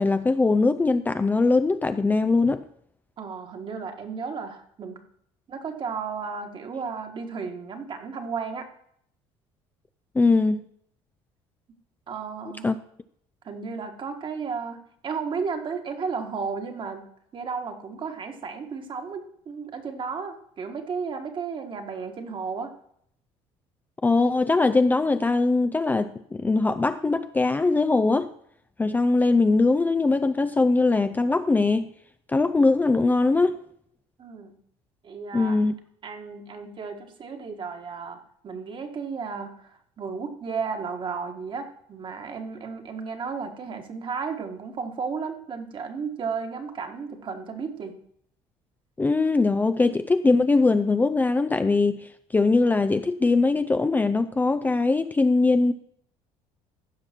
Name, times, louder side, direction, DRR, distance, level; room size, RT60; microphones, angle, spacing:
voice 1, 0.0-2.6 10.2-10.6 12.6-12.8 24.0-28.3 28.8-31.9 32.3-33.6 35.3-35.8 49.0-55.7, left 3 dB, 15° left, 10 dB, 0.4 m, -21 dB
voice 2, 3.2-5.0 5.5-8.7 12.1-12.7 13.4-17.0 17.3-22.7 34.2-34.6 35.0-35.6 36.0-48.0, right 5 dB, 40° right, 5 dB, 1.6 m, -34 dB
15.0 x 5.7 x 4.4 m, 0.68 s
cardioid pair, 105°, 12 cm